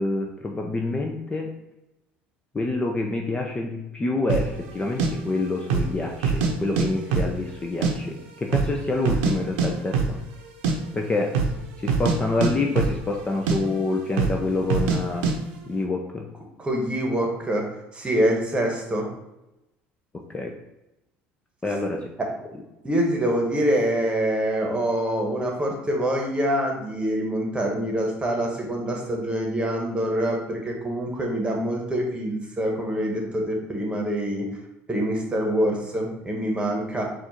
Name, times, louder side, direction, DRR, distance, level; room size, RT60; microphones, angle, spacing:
voice 1, 0.0-1.5 2.5-10.2 10.9-11.3 11.8-15.3 15.7-16.2 20.3-20.5 21.6-22.1, left 2 dB, 20° left, 1 dB, 0.5 m, -27 dB
sound 1, 4.3-4.5 5.0-5.1 5.6-5.9 6.2-6.9 7.1-7.9 8.2-8.3 8.5-9.3 9.6-9.7 9.9-10.2 10.5-10.8 11.3-11.6 11.9-13.2 13.5-13.6 14.2-14.4 14.7-15.0 15.2-15.4, right 5 dB, 85° right, 0.7 m, -23 dB
voice 2, 16.6-19.1 22.2-22.3 22.8-34.5 34.9-37.0, right 1 dB, 20° right, 0 dB, 1.2 m, -25 dB
4.3 x 2.5 x 4.3 m, 0.93 s
supercardioid pair, 85°, 5 cm